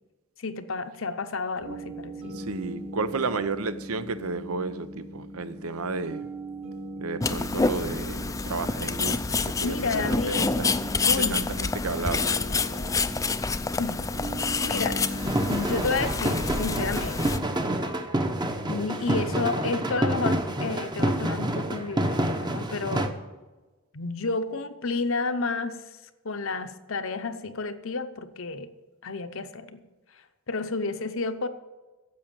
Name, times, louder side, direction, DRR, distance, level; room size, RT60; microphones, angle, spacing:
voice 1, 0.4-2.5 9.6-10.5 11.1-11.4 13.8-14.1 14.6-15.0 15.5-17.4 18.7-23.1 23.9-25.8 26.2-28.7 29.0-29.8 30.5-31.5, left 3 dB, 65° left, 0.8 m, -31 dB
sound 1, 1.6-15.5, equal, 60° right, 2.6 m, -39 dB
voice 2, 2.3-6.3 7.0-10.8 11.2-12.2, right 4 dB, 85° right, 0.8 m, -32 dB
sound 2, 7.2-17.4, left 4 dB, 15° left, 0.4 m, -28 dB
sound 3, 15.2-23.1, right 1 dB, 20° right, 0.8 m, -28 dB
10.5 x 7.6 x 8.9 m
head